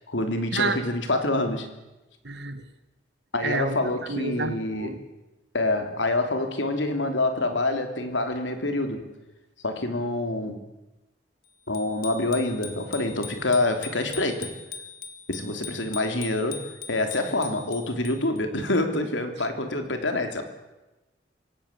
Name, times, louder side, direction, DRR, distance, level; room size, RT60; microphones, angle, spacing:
voice 1, 0.1-1.7 3.3-5.0 5.5-9.0 9.6-10.6 11.7-14.5 15.3-16.6 16.9-20.4, left 2 dB, 90° left, 6 dB, 3.3 m, -26 dB
voice 2, 2.2-2.6 3.4-3.8 4.1-5.0, right 3 dB, 65° right, 10 dB, 1.9 m, -29 dB
Bicycle bell, 11.7-18.4, left 6 dB, 55° left, 2.2 m, -41 dB
25.5 x 18.0 x 8.4 m, 1.0 s
head